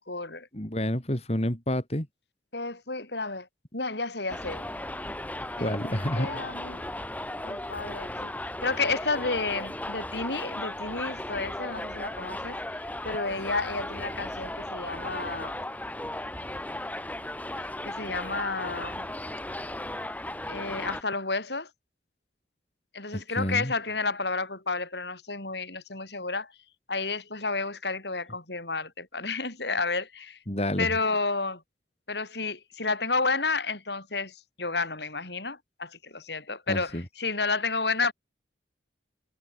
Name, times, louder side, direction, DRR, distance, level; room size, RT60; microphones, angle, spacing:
voice 1, 0.0-0.5 2.5-3.5 3.7-4.6 5.6-6.8 7.4-8.3 8.6-15.6 17.6-19.1 20.5-21.7 22.9-26.5 26.9-30.4 30.8-31.6 32.1-38.1, left 3 dB, 70° left, 6.4 m, -31 dB
voice 2, 0.5-2.1 5.6-6.4 23.1-23.7 30.5-30.9 36.7-37.1, left 1 dB, 35° left, 3.8 m, -29 dB
Subway metro underground, 4.3-21.0, left 1 dB, 10° left, 2.2 m, -36 dB
head